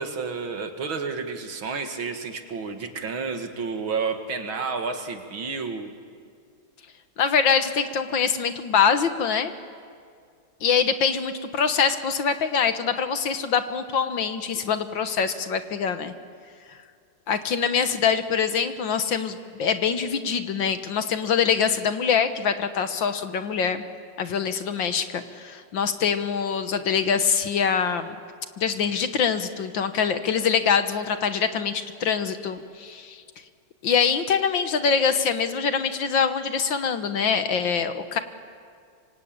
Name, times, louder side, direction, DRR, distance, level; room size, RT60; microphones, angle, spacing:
voice 1, 0.0-5.9, right 5 dB, 65° right, 6 dB, 2.6 m, -30 dB
voice 2, 7.2-9.5 10.6-16.1 16.7-16.8 17.3-23.8 24.2-28.2 28.6-33.2 33.8-38.2, left 6 dB, 60° left, 9 dB, 1.8 m, -24 dB
25.5 x 25.0 x 8.8 m, 2.2 s
omnidirectional pair, 2.4 m